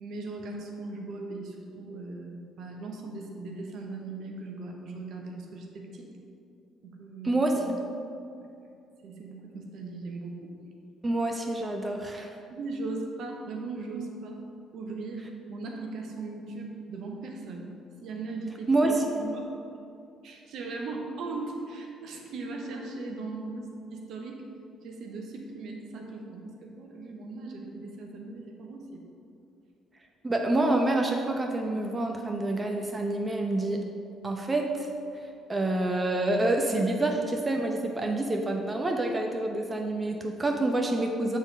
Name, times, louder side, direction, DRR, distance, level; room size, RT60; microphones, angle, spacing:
voice 1, 0.0-6.1 6.8-7.4 8.4-8.7 9.0-10.5 12.5-14.4 14.7-17.7 18.0-18.7 19.2-19.4 20.2-24.4 24.8-28.8, right 3 dB, 60° right, 1 dB, 0.9 m, -38 dB
voice 2, 7.2-7.8 11.0-12.3 18.7-19.3 30.2-33.8 34.2-34.9 35.2-41.4, right 2 dB, 25° right, 2 dB, 0.7 m, -27 dB
7.0 x 4.1 x 5.1 m, 2.5 s
hypercardioid pair, 50°, 0 cm